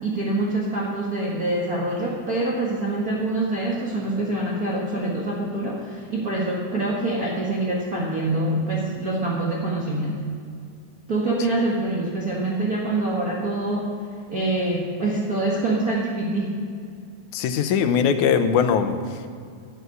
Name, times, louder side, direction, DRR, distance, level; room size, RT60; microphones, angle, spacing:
voice 1, 0.0-10.2 11.1-13.9 14.3-16.6, right 2 dB, 40° right, -4 dB, 1.6 m, -25 dB
voice 2, 17.3-19.3, left 7 dB, 90° left, 8 dB, 2.3 m, -21 dB
11.5 x 8.1 x 9.3 m, 2.3 s
omnidirectional pair, 3.3 m